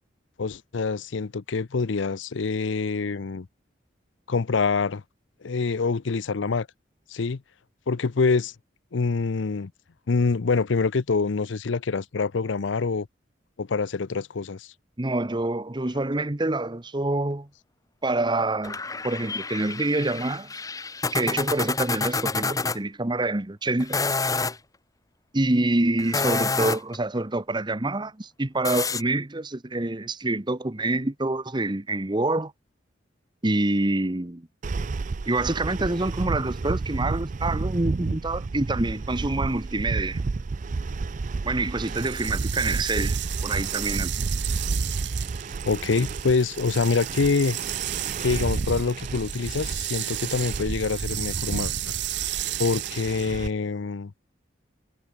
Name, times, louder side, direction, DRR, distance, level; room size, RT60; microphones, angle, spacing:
voice 1, 0.4-3.5 4.3-5.0 5.4-6.7 7.1-7.4 7.9-8.5 8.9-9.7 10.1-13.1 13.6-14.7 45.7-47.6 48.2-51.9 52.6-54.1, left 4 dB, 85° left, 0.6 m, -25 dB
voice 2, 15.0-17.5 18.0-20.5 21.1-24.0 25.3-32.5 33.4-34.5 35.3-40.2 41.4-43.2 43.4-44.1, right 2 dB, 25° right, 1.0 m, -26 dB
sound 1, 18.6-22.8 23.8-24.6 26.0-27.0 28.6-29.0, left 4 dB, 20° left, 1.3 m, -28 dB
sound 2, 34.6-53.5, right 3 dB, 40° right, 0.4 m, -31 dB
sound 3, 41.8-53.5, right 15 dB, 65° right, 1.4 m, -34 dB
head